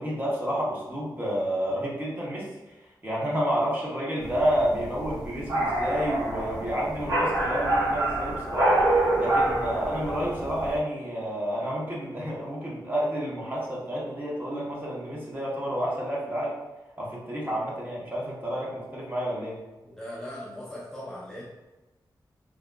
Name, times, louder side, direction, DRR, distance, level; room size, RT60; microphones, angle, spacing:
voice 1, 0.0-2.5 3.0-8.9 9.2-16.5 17.0-19.6, equal, 25° right, -5 dB, 1.1 m, -30 dB
sound 1, 4.2-10.8, right 1 dB, 50° right, 1.2 m, -26 dB
voice 2, 19.8-21.4, left 1 dB, 5° left, -7 dB, 0.7 m, -39 dB
3.8 x 2.8 x 2.3 m, 1.1 s
wide cardioid pair, 90°, 8 cm